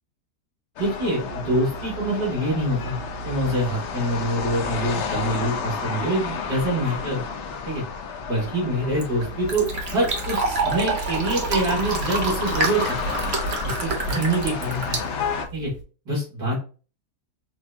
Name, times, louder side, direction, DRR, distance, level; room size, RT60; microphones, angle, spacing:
sound 1, 0.8-15.5, left 5 dB, 60° left, 0.7 m, -32 dB
voice 1, 0.8-3.0 3.2-7.2 7.7-7.8 8.3-13.0 13.6-15.0 15.5-15.7 16.1-16.6, right 1 dB, 75° right, -7 dB, 2.6 m, -25 dB
Fill (with liquid), 8.7-15.8, right 3 dB, 45° right, 1.0 m, -28 dB
6.0 x 2.3 x 2.7 m, 0.36 s
omnidirectional pair, 1.7 m